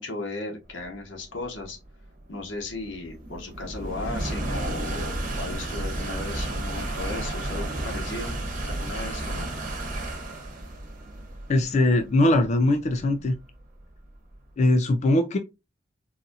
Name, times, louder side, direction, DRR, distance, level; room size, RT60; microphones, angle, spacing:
voice 1, 0.0-1.8 2.3-8.4 8.7-9.5, left 2 dB, 85° left, 1.1 m, -36 dB
sound 1, 1.0-14.3, right 1 dB, 40° right, 1.1 m, -33 dB
voice 2, 11.5-13.3 14.6-15.4, left 1 dB, 35° left, 0.3 m, -21 dB
4.1 x 2.4 x 2.6 m
head